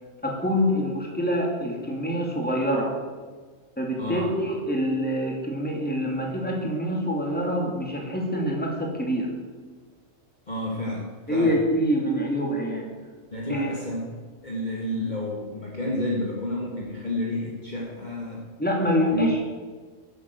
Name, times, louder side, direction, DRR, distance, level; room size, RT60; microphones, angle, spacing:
voice 1, 0.2-2.9 3.8-9.3 11.3-12.9 13.5-13.7 18.6-19.4, equal, 5° left, -1 dB, 2.8 m, -25 dB
voice 2, 4.0-4.3 10.5-11.6 13.3-14.1 14.4-18.5 19.1-19.3, left 1 dB, 35° left, -3 dB, 1.9 m, -30 dB
11.5 x 8.4 x 7.9 m, 1.4 s
omnidirectional pair, 1.4 m